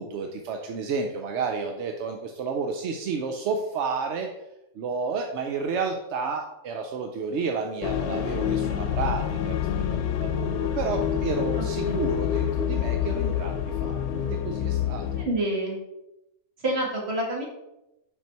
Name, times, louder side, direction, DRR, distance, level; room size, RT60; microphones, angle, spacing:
voice 1, 0.0-4.3 4.7-9.7 10.1-15.0, right 5 dB, 60° right, 3 dB, 0.8 m, -31 dB
sound 1, 7.8-15.3, left 9 dB, 85° left, 1.1 m, -27 dB
voice 2, 11.5-12.0 15.2-15.8 16.6-17.5, right 1 dB, 45° right, -1 dB, 1.9 m, -28 dB
5.5 x 5.4 x 4.4 m, 0.91 s
omnidirectional pair, 1.5 m